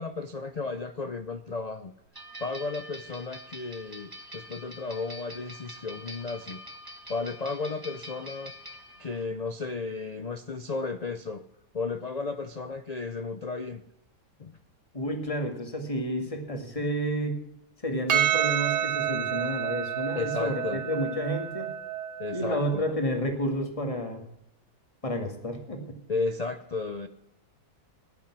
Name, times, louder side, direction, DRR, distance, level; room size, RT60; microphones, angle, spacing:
voice 1, 0.0-1.9 2.4-6.6 7.1-8.5 9.0-11.4 11.7-13.8 14.4-14.5 15.0-15.1 20.1-20.8 22.2-22.9 26.1-27.1, left 3 dB, 85° left, 10 dB, 0.3 m, -34 dB
sound 1, 2.1-9.2, equal, 15° right, 1.2 m, -45 dB
voice 2, 14.9-17.4 17.8-21.7 22.3-24.2 25.0-25.9, equal, 20° left, 4 dB, 2.2 m, -30 dB
Percussion, 18.1-22.7, right 10 dB, 80° right, 1.9 m, -29 dB
14.5 x 10.5 x 6.0 m, 0.80 s
omnidirectional pair, 1.8 m